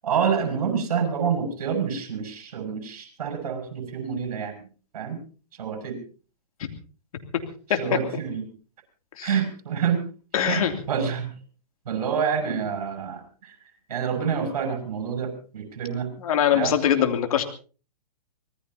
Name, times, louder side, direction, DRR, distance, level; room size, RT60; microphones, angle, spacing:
voice 1, 0.0-4.5 4.9-5.2 5.6-6.0 7.8-8.4 9.2-10.0 10.4-11.3 11.9-13.5 13.9-16.1 16.5-16.7, right 7 dB, 60° right, 4 dB, 6.7 m, -27 dB
voice 2, 10.3-10.7 16.2-17.4, left 9 dB, 60° left, 6 dB, 2.8 m, -22 dB
25.0 x 19.5 x 2.8 m, 0.38 s
hypercardioid pair, 130°, 21 cm